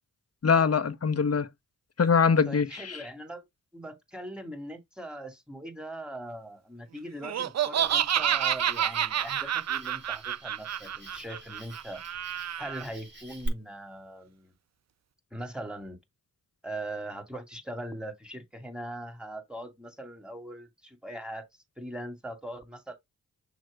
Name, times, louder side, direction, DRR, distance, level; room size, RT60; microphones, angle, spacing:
voice 1, 0.4-1.5 2.0-3.0, left 5 dB, 40° left, 0.9 m, -23 dB
voice 2, 2.5-3.5 3.7-12.0 12.6-14.5 15.3-16.0 16.6-21.5 21.8-23.0, right 1 dB, ahead, 2.3 m, -40 dB
Laughter, 7.2-12.8, right 10 dB, 45° right, 0.5 m, -29 dB
Cricket, 7.8-13.5, right 2 dB, 30° right, 3.5 m, -46 dB
6.4 x 3.0 x 5.1 m
cardioid pair, 40°, 37 cm